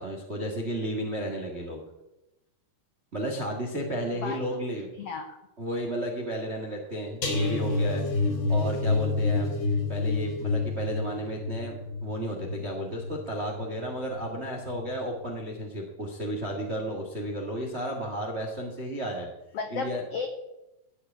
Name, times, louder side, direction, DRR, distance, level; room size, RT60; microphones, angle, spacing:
voice 1, 0.0-1.8 3.1-4.9 5.6-8.0 8.5-9.5 9.9-19.3 19.7-20.0, right 1 dB, 45° right, 1 dB, 0.8 m, -33 dB
voice 2, 5.0-5.4 19.5-20.3, left 5 dB, 85° left, 5 dB, 1.3 m, -33 dB
sound 1, 7.2-14.3 14.6-14.9 15.3-15.4, left 3 dB, 55° left, 1.4 m, -29 dB
14.0 x 4.9 x 9.1 m, 0.94 s
omnidirectional pair, 4.1 m